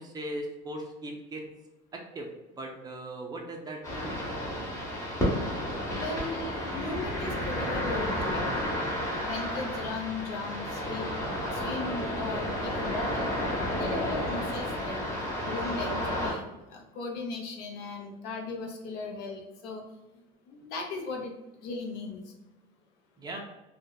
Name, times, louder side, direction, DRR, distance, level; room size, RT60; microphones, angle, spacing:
voice 1, 0.0-1.4 1.9-2.3 2.5-4.4 23.2-23.4, right 1 dB, 20° right, 1 dB, 0.3 m, -39 dB
sound 1, 3.8-16.3, equal, 15° left, 0.7 m, -31 dB
voice 2, 5.9-8.6 9.2-11.1 11.5-13.3 13.7-15.1 15.4-16.4 16.7-19.8 20.5-21.3 21.6-22.2, left 3 dB, 65° left, 1 dB, 0.6 m, -37 dB
2.7 x 2.1 x 2.2 m, 1.0 s
cardioid pair, 140°, 18 cm